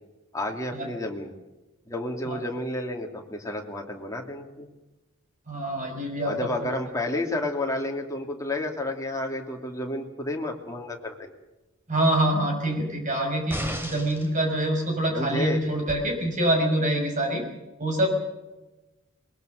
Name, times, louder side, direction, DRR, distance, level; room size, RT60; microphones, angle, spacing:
voice 1, 0.3-1.3 1.9-4.7 6.3-11.3 15.1-15.6, left 1 dB, 15° left, 1 dB, 2.8 m, -31 dB
voice 2, 5.5-6.3 6.6-6.7 11.9-17.4 17.8-18.1, right 1 dB, 35° right, 3 dB, 6.0 m, -25 dB
sound 1, 13.5-14.3 15.9-16.0, equal, 10° right, 3.3 m, -33 dB
22.0 x 21.5 x 6.6 m, 1.1 s
head